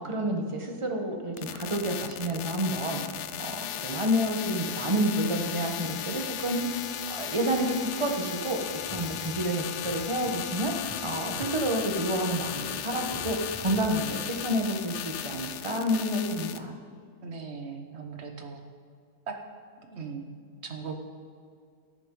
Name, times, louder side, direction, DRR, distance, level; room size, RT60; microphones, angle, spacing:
voice 1, 0.0-3.0 3.4-3.5 3.8-6.6 7.1-16.8, equal, 20° right, 2 dB, 1.1 m, -29 dB
sound 1, 1.4-16.6, left 11 dB, 80° left, 1.2 m, -36 dB
voice 2, 3.1-3.4 7.3-7.5 9.0-9.4 11.3-11.5 14.0-14.2 17.2-18.6 19.3-19.4 19.8-20.3 20.6-21.0, right 5 dB, 45° right, 4 dB, 1.3 m, -40 dB
sound 2, 8.6-14.6, right 1 dB, 20° left, 2.1 m, -48 dB
14.0 x 10.5 x 3.8 m, 2.3 s
omnidirectional pair, 1.7 m